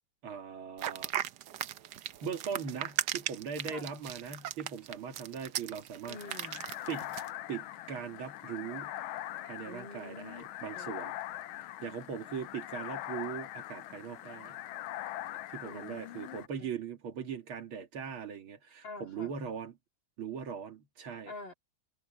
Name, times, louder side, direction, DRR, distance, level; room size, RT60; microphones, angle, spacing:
voice 1, 0.2-1.1 2.2-6.2 6.9-7.2 7.5-8.9 9.4-11.1 11.8-14.6 15.5-19.8 20.2-21.3, right 7 dB, 80° right, 2.8 m, -40 dB
sound 1, 0.8-7.3, right 12 dB, 65° right, 1.2 m, -37 dB
sound 2, 6.1-16.5, left 14 dB, 85° left, 1.5 m, -42 dB
voice 2, 6.1-6.7 9.7-10.4 10.7-10.9 15.6-16.7 18.8-19.3 21.2-21.5, left 3 dB, 60° left, 4.0 m, -47 dB
omnidirectional pair, 2.3 m